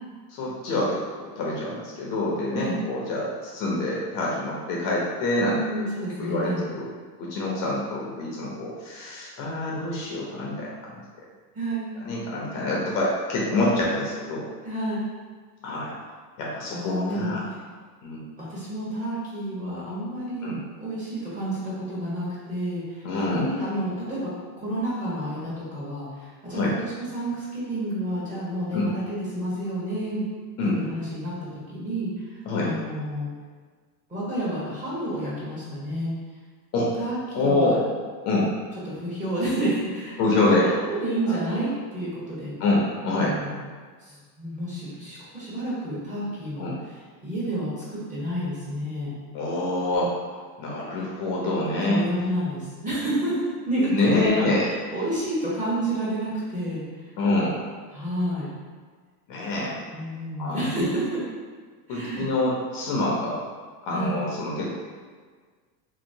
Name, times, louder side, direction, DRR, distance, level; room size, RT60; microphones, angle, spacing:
voice 1, 0.3-5.9 6.2-6.9 7.2-11.0 12.0-14.5 15.6-15.9 16.4-17.4 18.0-18.2 20.4-20.6 23.0-23.5 26.5-26.7 28.7-28.9 30.6-30.8 32.5-32.7 36.7-36.9 37.3-37.8 38.2-38.5 40.2-40.7 41.3-41.4 42.6-43.3 46.6-46.8 49.3-50.1 50.6-52.0 53.9-54.7 57.2-57.6 59.3-59.8 60.4-60.7 61.9-63.4 63.8-64.7, left 2 dB, 45° left, -4 dB, 0.8 m, -26 dB
voice 2, 5.4-6.6 11.5-11.9 14.6-15.1 16.7-17.3 18.4-24.3 24.6-30.2 30.6-33.3 34.1-36.1 37.0-37.8 38.8-42.5 43.1-43.6 44.0-46.7 47.2-49.1 51.8-57.1 57.9-58.5 59.7-61.2 61.9-62.3 63.9-64.2, right 1 dB, 15° right, -8 dB, 1.1 m, -30 dB
2.9 x 2.9 x 2.7 m, 1.6 s
supercardioid pair, 125°, 46 cm